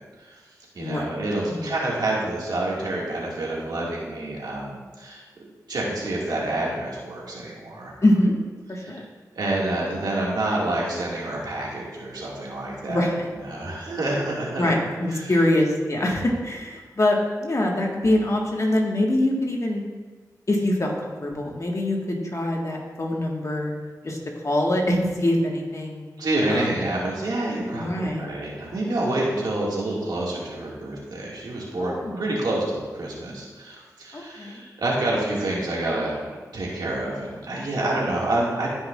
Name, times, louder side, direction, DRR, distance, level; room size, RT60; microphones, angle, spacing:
voice 1, 0.7-5.2 5.7-7.9 8.8-9.0 9.4-13.1 13.5-14.7 15.1-15.3 26.2-38.7, right 1 dB, 85° right, -4 dB, 2.0 m, -28 dB
voice 2, 8.0-8.3 8.7-9.0 12.9-13.3 14.6-19.8 20.5-23.7 24.0-24.2 24.4-26.0 26.5-26.7 27.7-28.2 31.8-32.2 34.1-34.6, left 1 dB, 50° left, -1 dB, 1.6 m, -24 dB
13.5 x 5.5 x 2.5 m, 1.4 s
cardioid pair, 45°, 7 cm